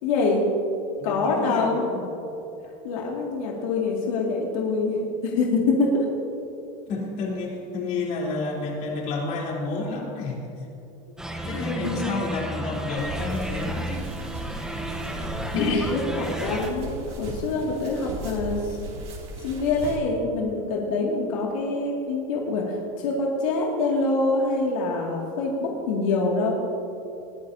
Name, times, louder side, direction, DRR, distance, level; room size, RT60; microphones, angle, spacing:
voice 1, 0.0-0.5 1.0-1.9 2.8-6.1 11.4-12.1 15.5-18.8 19.4-26.5, left 3 dB, 85° left, -2 dB, 2.4 m, -25 dB
voice 2, 1.0-2.0 6.9-10.5 11.5-14.2 15.5-15.9, left 3 dB, 50° left, -3 dB, 3.8 m, -30 dB
sound 1, 11.2-16.7, right 1 dB, 5° right, 1.0 m, -32 dB
sound 2, 13.0-20.0, right 2 dB, 35° right, 2.9 m, -37 dB
21.0 x 15.0 x 2.8 m, 2.9 s
supercardioid pair, 150°, 17 cm